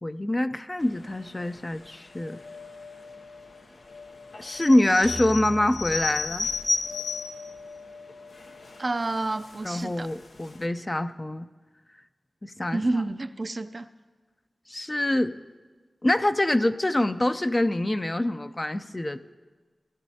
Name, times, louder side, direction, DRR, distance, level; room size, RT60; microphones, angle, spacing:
voice 1, 0.0-2.4 4.4-6.5 9.6-11.5 12.4-13.0 14.7-15.4 16.0-19.2, left 1 dB, 30° left, 10 dB, 0.5 m, -25 dB
sound 1, 1.0-10.2, left 4 dB, 55° left, 1.6 m, -47 dB
sound 2, 4.3-7.5 8.1-8.2 8.4-8.8 9.5-9.8 10.2-10.3 10.5-10.6, left 3 dB, 85° left, 0.7 m, -31 dB
sound 3, 5.0-7.3, right 2 dB, 80° right, 1.0 m, -41 dB
voice 2, 8.8-10.1 12.7-13.8, right 2 dB, 50° right, 10 dB, 0.5 m, -29 dB
18.0 x 12.0 x 2.8 m, 1.4 s
cardioid pair, 50°, 0 cm